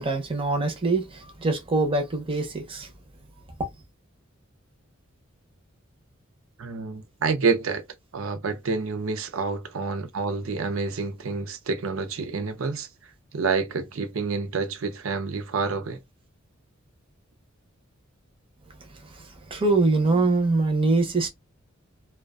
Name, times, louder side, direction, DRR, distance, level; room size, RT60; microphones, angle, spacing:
voice 1, 0.0-2.9 19.5-21.3, right 3 dB, 25° right, 0.6 m, -23 dB
voice 2, 6.6-7.8 8.1-12.9 13.3-16.0, right 4 dB, 75° right, 0.5 m, -28 dB
2.4 x 2.2 x 2.3 m
head